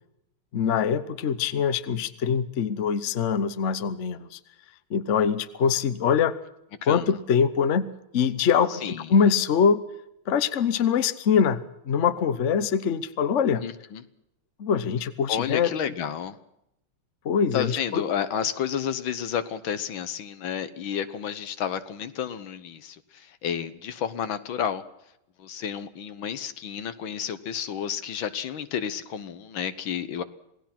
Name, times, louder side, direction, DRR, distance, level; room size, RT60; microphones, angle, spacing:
voice 1, 0.5-4.4 4.9-6.3 6.9-7.8 8.1-9.8 10.3-13.6 14.6-15.7 17.2-18.0, left 7 dB, 45° left, 13 dB, 1.0 m, -23 dB
voice 2, 6.8-7.2 8.8-9.1 13.6-14.0 15.3-16.4 17.5-24.8 25.4-30.2, left 8 dB, 70° left, 12 dB, 1.8 m, -31 dB
27.5 x 18.0 x 6.0 m, 0.81 s
omnidirectional pair, 2.3 m